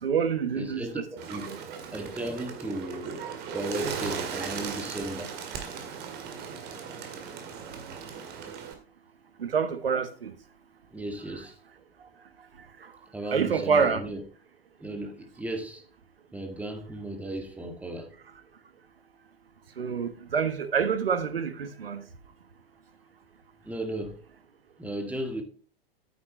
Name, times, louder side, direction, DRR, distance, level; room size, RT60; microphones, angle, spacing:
voice 1, 0.0-1.0 1.5-1.6 3.2-4.3 9.4-10.3 13.3-14.0 19.8-22.0, right 6 dB, 70° right, 1.3 m, -27 dB
voice 2, 0.5-1.0 1.3-1.6 1.9-5.3 10.9-11.6 13.1-14.2 14.8-15.8 16.3-18.1 23.6-24.2 24.8-25.4, right 1 dB, 5° right, 1.7 m, -35 dB
Bird, 1.2-8.7, right 6 dB, 35° right, 2.0 m, -37 dB
9.2 x 8.8 x 3.0 m
figure-of-eight pair, 95°, 30 cm